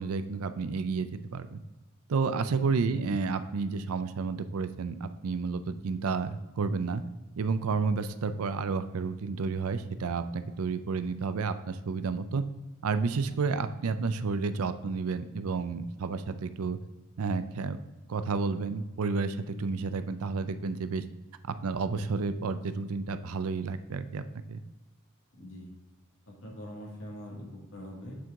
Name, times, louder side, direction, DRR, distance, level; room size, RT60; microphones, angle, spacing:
voice 1, 0.0-1.6 2.1-7.0 7.4-12.4 12.8-16.8 17.2-17.8 18.1-21.0 21.4-24.2 24.5-24.6, right 4 dB, 85° right, 11 dB, 0.5 m, -31 dB
voice 2, 2.9-3.2 25.4-25.7 26.3-28.2, equal, 65° left, -2 dB, 2.0 m, -43 dB
8.3 x 4.6 x 3.7 m, 1.1 s
head